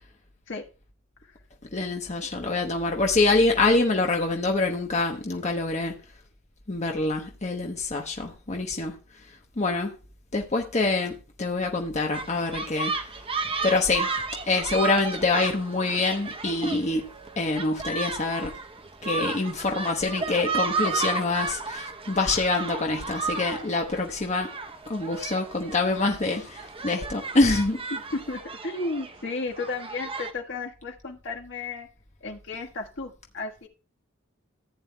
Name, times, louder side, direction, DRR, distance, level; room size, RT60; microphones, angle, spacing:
voice 1, 1.7-5.9 6.7-8.9 9.6-9.9 10.3-12.9 13.6-14.1 14.4-17.1 17.4-18.5 19.0-24.5 24.9-27.8, left 3 dB, 35° left, 1.0 m, -25 dB
sound 1, 12.1-30.3, right 4 dB, 25° right, 0.8 m, -33 dB
voice 2, 27.9-31.9 32.2-33.7, left 3 dB, 65° left, 1.5 m, -34 dB
14.5 x 9.2 x 2.2 m
head